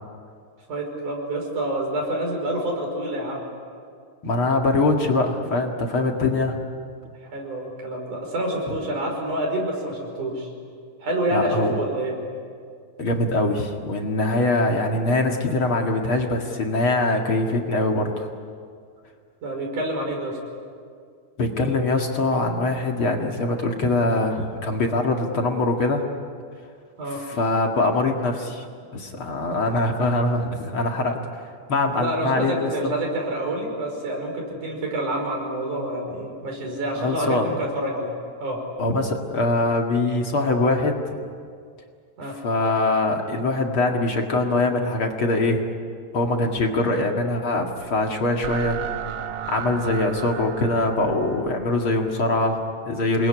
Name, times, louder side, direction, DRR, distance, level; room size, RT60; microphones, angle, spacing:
voice 1, 0.7-3.5 7.2-10.5 11.0-12.2 19.4-20.4 27.0-27.2 31.9-38.1 38.4-38.6 42.2-42.4, right 1 dB, 85° right, 1 dB, 6.9 m, -27 dB
voice 2, 4.2-6.6 11.3-11.8 13.0-18.3 21.4-26.0 27.3-28.6 28.9-31.2 31.7-32.7 37.0-37.5 38.8-41.0 42.4-45.6 46.1-48.8 49.5-53.3, left 2 dB, 45° left, 2 dB, 2.7 m, -23 dB
sound 1, 47.7-52.8, right 9 dB, 60° right, 1.8 m, -35 dB
27.5 x 21.5 x 9.9 m, 2.2 s
omnidirectional pair, 3.5 m